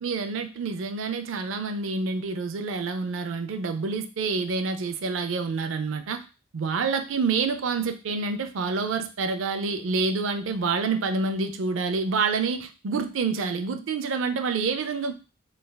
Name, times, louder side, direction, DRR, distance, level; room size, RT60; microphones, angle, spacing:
voice 1, 0.0-6.2 6.5-15.1, right 4 dB, 75° right, 7 dB, 0.4 m, -27 dB
3.3 x 3.2 x 2.2 m, 0.31 s
head